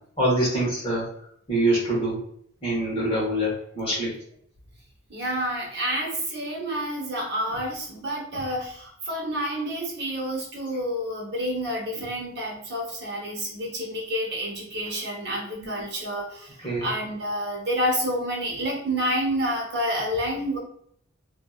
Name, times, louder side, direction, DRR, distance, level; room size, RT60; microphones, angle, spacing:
voice 1, 0.2-1.1 1.5-2.2 2.6-4.1 15.6-15.7 16.6-16.9, right 1 dB, 25° left, -5 dB, 1.3 m, -25 dB
voice 2, 5.1-20.6, equal, 50° right, -2 dB, 0.9 m, -29 dB
2.9 x 2.6 x 2.3 m, 0.65 s
head